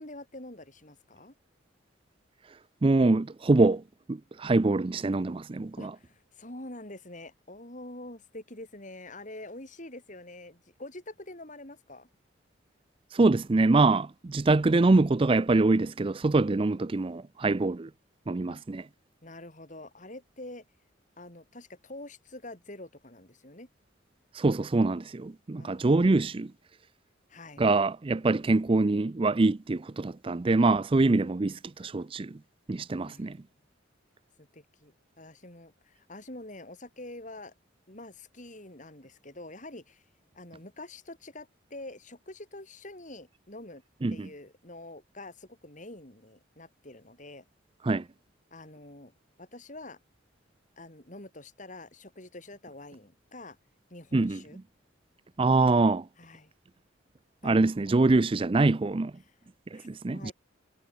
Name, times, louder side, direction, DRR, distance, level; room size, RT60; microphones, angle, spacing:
voice 1, 0.0-1.4 5.8-12.1 18.5-18.6 19.2-20.7 21.2-23.7 25.6-26.0 27.3-27.7 33.1-33.4 34.4-37.5 37.9-40.0 40.4-43.8 44.1-47.4 48.5-50.0 50.8-53.6 53.9-54.6 56.2-56.5 57.4-58.0 59.2-59.4 59.7-60.3, left 2 dB, 40° left, 5.2 m, -46 dB
voice 2, 2.8-3.8 4.1-5.9 13.1-17.9 18.3-18.8 24.3-26.5 27.6-32.4 32.7-33.4 44.0-44.3 47.8-48.0 54.1-54.4 55.4-56.1 57.4-59.1 59.7-60.3, right 3 dB, 30° right, 0.4 m, -24 dB
head